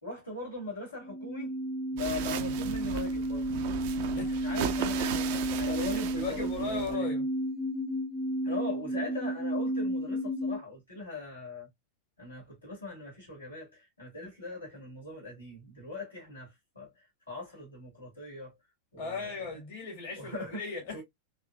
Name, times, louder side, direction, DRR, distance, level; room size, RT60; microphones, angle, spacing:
voice 1, 0.0-1.6 1.9-3.5 4.4-5.2 5.6-7.1 8.4-11.7 12.2-16.9 17.3-18.6 18.9-19.5 20.2-20.6 20.9-21.0, left 2 dB, 80° left, 2.1 m, -40 dB
sound 1, 1.0-10.6, right 1 dB, 5° right, 0.7 m, -32 dB
sound 2, 2.0-7.0, right 9 dB, 50° right, 0.5 m, -37 dB
voice 2, 4.0-4.7 5.3-5.8 6.1-7.2 19.0-21.0, left 4 dB, 55° left, 2.0 m, -38 dB
3.9 x 2.8 x 2.3 m
figure-of-eight pair, 90°, 0 cm